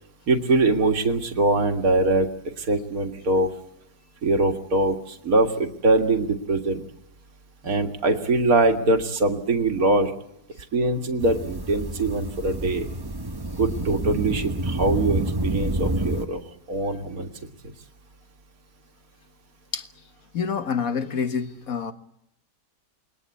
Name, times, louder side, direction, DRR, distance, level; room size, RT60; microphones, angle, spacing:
voice 1, 0.3-2.3 2.6-3.5 4.2-6.8 7.6-10.1 10.7-12.9 13.6-16.4 16.7-17.3, right 2 dB, 55° right, 2.3 m, -22 dB
sound 1, 11.2-16.3, right 1 dB, 20° right, 0.7 m, -28 dB
voice 2, 20.3-21.9, left 6 dB, 55° left, 1.8 m, -27 dB
28.5 x 20.5 x 8.4 m
omnidirectional pair, 1.8 m